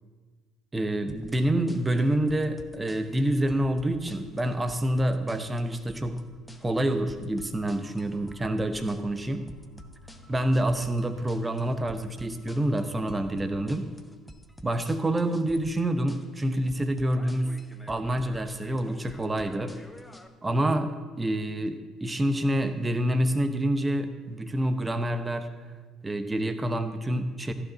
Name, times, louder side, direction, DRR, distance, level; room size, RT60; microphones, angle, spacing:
voice 1, 0.7-6.2 6.6-9.4 10.3-13.9 14.6-17.5 17.9-19.7 20.4-25.5 26.0-27.5, right 1 dB, 20° right, 10 dB, 0.9 m, -27 dB
sound 1, 1.1-20.3, left 1 dB, 10° left, 0.9 m, -49 dB
sound 2, 5.7-13.5, left 1 dB, 90° right, 0.8 m, -54 dB
14.5 x 5.0 x 6.0 m, 1.4 s
figure-of-eight pair, 50°, 0 cm